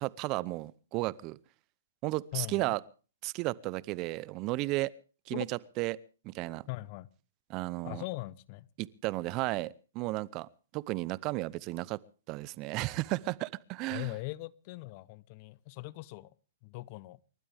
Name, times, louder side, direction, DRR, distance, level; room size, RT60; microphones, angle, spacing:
voice 1, 0.0-1.4 2.0-2.8 3.2-4.9 5.3-6.0 6.2-6.7 7.5-8.0 8.8-10.5 10.7-12.0 12.3-14.1, right 20 dB, 35° right, 0.7 m, -34 dB
voice 2, 2.3-2.7 5.3-5.5 6.7-7.1 7.8-8.7 13.9-16.3 16.6-17.2, left 20 dB, 40° left, 0.8 m, -40 dB
29.5 x 12.5 x 3.5 m
hypercardioid pair, 130°, 0 cm